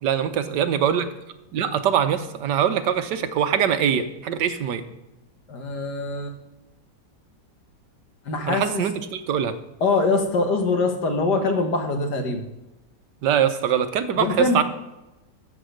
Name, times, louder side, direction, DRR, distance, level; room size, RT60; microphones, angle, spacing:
voice 1, 0.0-1.1 1.5-4.8 8.5-9.6 13.2-14.6, right 9 dB, 75° right, 9 dB, 1.5 m, -23 dB
voice 2, 5.5-6.3 8.3-8.6 9.8-12.4 14.2-14.6, left 3 dB, 70° left, 5 dB, 1.8 m, -23 dB
14.0 x 4.7 x 6.5 m, 0.99 s
omnidirectional pair, 1.9 m